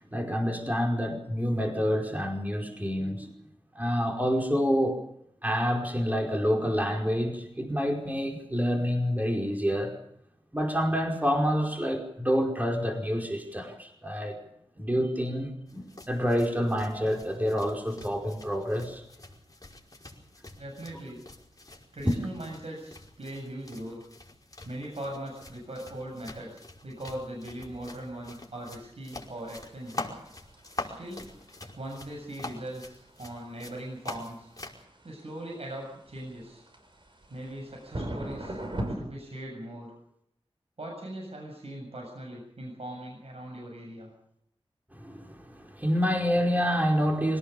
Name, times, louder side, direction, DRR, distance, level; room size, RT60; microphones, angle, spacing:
voice 1, 0.1-3.3 3.7-5.0 5.4-9.9 10.5-14.4 14.8-19.0 22.0-22.1 44.9-47.4, equal, 15° right, 1 dB, 5.1 m, -28 dB
sound 1, 15.7-34.8, left 2 dB, 35° left, 5.1 m, -45 dB
voice 2, 20.6-21.2 21.9-24.0 24.6-30.1 31.0-31.3 31.8-34.5 35.0-36.6 37.3-38.6 38.9-39.9 40.8-44.1, right 1 dB, 70° right, 0 dB, 7.5 m, -40 dB
sound 2, 29.2-39.0, right 1 dB, 50° right, 6.1 m, -41 dB
26.0 x 18.0 x 6.9 m, 0.75 s
wide cardioid pair, 65°, 11 cm